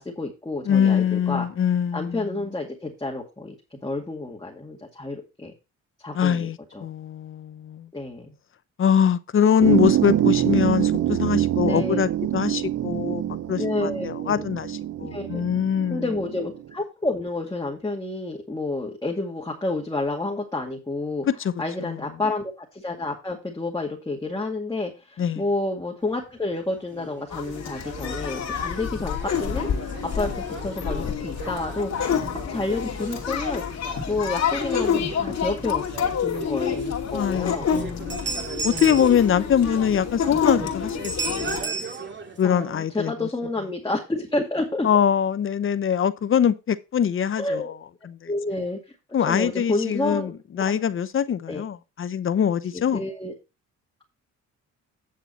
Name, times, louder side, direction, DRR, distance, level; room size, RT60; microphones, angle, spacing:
voice 1, 0.0-1.5 1.9-5.5 6.0-6.8 7.9-8.3 11.6-12.0 13.6-14.5 15.0-15.4 15.9-21.3 21.6-32.2 32.5-33.6 34.1-35.8 36.2-37.7 38.7-39.0 42.4-44.9 47.4-47.7 48.3-48.8 49.3-50.7 51.5-51.6 52.7-53.3, left 2 dB, 15° left, 2.1 m, -30 dB
voice 2, 0.6-2.3 6.1-7.9 8.8-16.0 21.3-21.5 21.8-22.0 25.2-25.4 37.1-38.2 38.6-41.6 42.4-43.3 44.8-47.8 48.0-48.1 49.1-50.3 50.6-53.0, left 8 dB, 45° left, 0.8 m, -23 dB
sound 1, 9.6-16.6, right 12 dB, 55° right, 0.8 m, -25 dB
sound 2, 26.0-42.7, right 4 dB, 40° right, 2.4 m, -37 dB
sound 3, 27.3-41.6, left 7 dB, 60° left, 2.5 m, -28 dB
9.5 x 6.8 x 4.3 m
cardioid pair, 90°, 30 cm